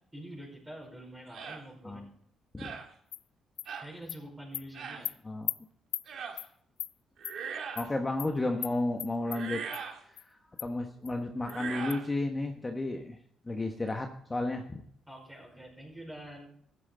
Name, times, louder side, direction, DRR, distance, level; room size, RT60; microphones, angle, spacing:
voice 1, 0.1-2.0 3.8-5.1 15.1-16.6, right 1 dB, 10° right, -2 dB, 5.2 m, -46 dB
sound 1, 1.3-1.6 2.6-2.9 3.7-3.9 4.7-5.0 6.1-6.4 7.2-7.9 9.3-10.0 11.4-12.1, right 6 dB, 70° right, 2.1 m, -40 dB
Animal, 3.1-3.2 3.6-3.7 4.1-4.2 4.5-4.6 5.1-5.2 5.5-5.6 5.9-6.1 6.4-6.5 6.8-6.9 7.2-7.4 7.8-7.9 8.2-8.3 8.6-8.7 9.0-9.4 9.7-9.8 10.2-10.3 10.6-10.7 11.1-11.2 11.5-11.6 11.9-12.0, left 11 dB, 75° left, 0.4 m, -36 dB
voice 2, 7.7-9.6 10.1-13.2 13.4-14.8, left 2 dB, 20° left, 3 dB, 1.3 m, -33 dB
14.0 x 9.9 x 4.0 m, 0.64 s
cardioid pair, 90°, 0 cm